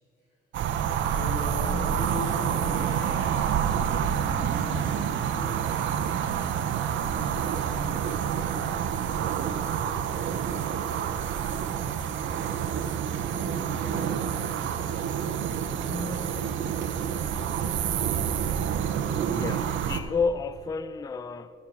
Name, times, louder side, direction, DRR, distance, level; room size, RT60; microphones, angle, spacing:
sound 1, 0.5-20.0, right 8 dB, 70° right, 0.6 m, -28 dB
voice 1, 1.1-3.6 4.0-5.6 6.7-8.1 10.1-10.9 11.5-11.9 13.3-17.2, left 2 dB, 75° left, 2.8 m, -40 dB
voice 2, 19.3-21.7, left 5 dB, 20° left, 0.3 m, -31 dB
9.4 x 7.4 x 5.9 m
cardioid pair, 90°, 20 cm